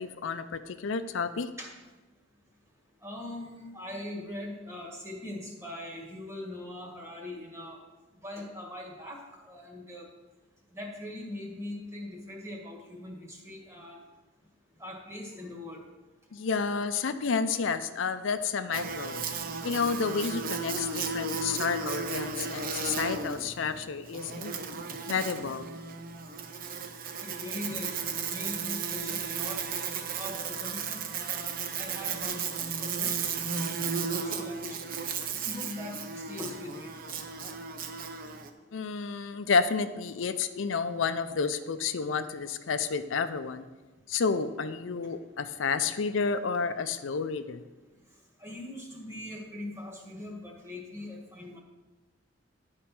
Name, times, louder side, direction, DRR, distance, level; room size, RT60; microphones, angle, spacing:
voice 1, 0.0-1.5 16.3-19.2 19.6-24.5 25.1-25.7 38.7-43.7 44.1-47.6, left 5 dB, 90° left, 10 dB, 0.5 m, -30 dB
voice 2, 3.0-7.8 8.2-9.2 9.4-10.1 10.7-14.0 14.8-15.8 27.2-29.6 30.2-31.5 31.8-34.9 35.4-37.0 48.4-51.6, left 1 dB, 15° right, -2 dB, 1.7 m, -41 dB
Buzz, 18.7-38.5, right 5 dB, 50° right, 0.6 m, -34 dB
10.0 x 4.4 x 6.0 m, 1.2 s
head